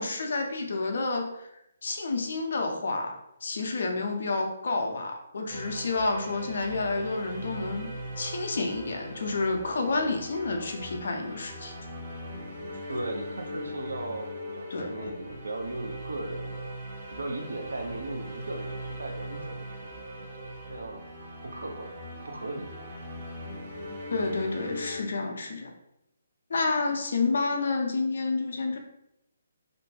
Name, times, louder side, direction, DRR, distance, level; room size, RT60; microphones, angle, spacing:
voice 1, 0.0-1.5 1.8-11.7 14.7-15.1 24.1-25.7 26.5-28.8, left 3 dB, 55° left, 3 dB, 0.4 m, -30 dB
sound 1, 5.5-25.0, equal, 30° right, 0.8 m, -40 dB
voice 2, 12.9-16.6 17.1-21.0 21.5-22.0 22.2-22.7, right 2 dB, 70° right, 4 dB, 0.4 m, -37 dB
2.5 x 2.1 x 2.7 m, 0.82 s
figure-of-eight pair, 135°, 0 cm